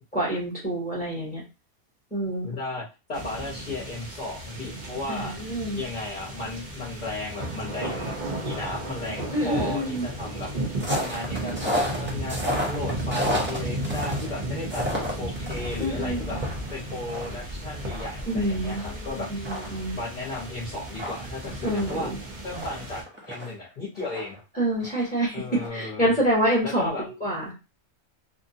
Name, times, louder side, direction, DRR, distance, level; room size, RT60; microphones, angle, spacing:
voice 1, 0.1-1.4 2.1-2.5 5.1-5.8 9.3-10.1 15.8-16.4 18.3-20.0 21.6-22.2 24.5-27.6, right 1 dB, 10° left, -7 dB, 0.9 m, -27 dB
voice 2, 2.4-2.8 3.1-5.4 5.7-8.2 8.4-10.5 10.9-16.4 16.7-19.4 19.9-22.1 22.4-24.4 25.3-26.1 26.6-27.1, left 2 dB, 40° left, -6 dB, 0.9 m, -35 dB
sound 1, 3.1-23.0, right 1 dB, 40° right, 0.9 m, -34 dB
sound 2, 10.8-15.8 16.2-18.9 19.2-19.3 19.4-23.5 24.0-25.2 25.5-25.7, equal, 10° right, 0.5 m, -32 dB
2.7 x 2.2 x 2.7 m, 0.29 s
omnidirectional pair, 1.3 m